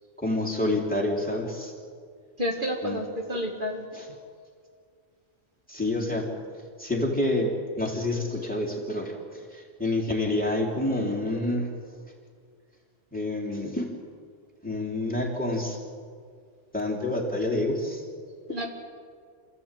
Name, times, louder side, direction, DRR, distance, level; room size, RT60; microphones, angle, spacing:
voice 1, 0.2-1.7 2.8-3.0 3.9-4.1 5.7-6.3 6.8-11.7 13.1-13.9 14.6-15.8 16.7-18.0 18.5-18.6, left 1 dB, 5° left, -2 dB, 3.5 m, -28 dB
voice 2, 2.4-3.9 18.5-18.7, equal, 50° right, 0 dB, 2.2 m, -30 dB
28.0 x 14.5 x 9.2 m, 2.1 s
omnidirectional pair, 1.1 m